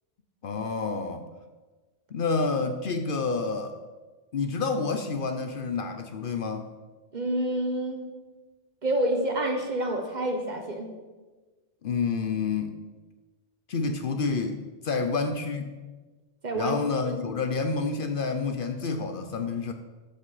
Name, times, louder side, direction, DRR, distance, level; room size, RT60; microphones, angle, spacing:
voice 1, 0.4-1.3 2.1-3.8 4.3-6.7 11.8-12.7 13.7-15.7 16.5-19.7, left 4 dB, 55° left, 7 dB, 0.8 m, -29 dB
voice 2, 7.1-8.1 8.8-10.9 16.4-16.8, right 1 dB, 45° right, 3 dB, 1.1 m, -28 dB
13.5 x 5.2 x 4.0 m, 1.3 s
omnidirectional pair, 1.1 m